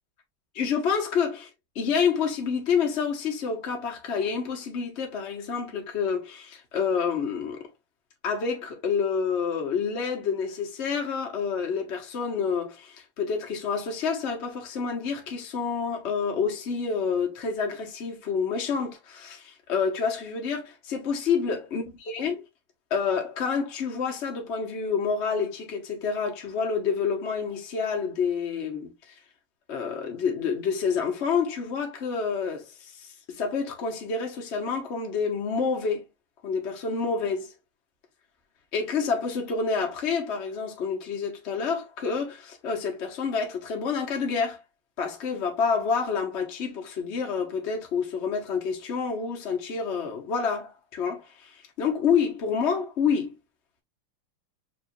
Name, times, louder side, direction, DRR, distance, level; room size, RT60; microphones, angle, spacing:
voice 1, 0.6-1.5 1.7-7.6 8.2-22.4 22.9-28.9 29.7-32.7 33.0-36.1 36.4-37.5 38.7-44.6 45.0-51.5 51.8-53.3, left 5 dB, 45° left, 0.9 m, -28 dB
5.2 x 3.0 x 2.5 m
omnidirectional pair, 2.4 m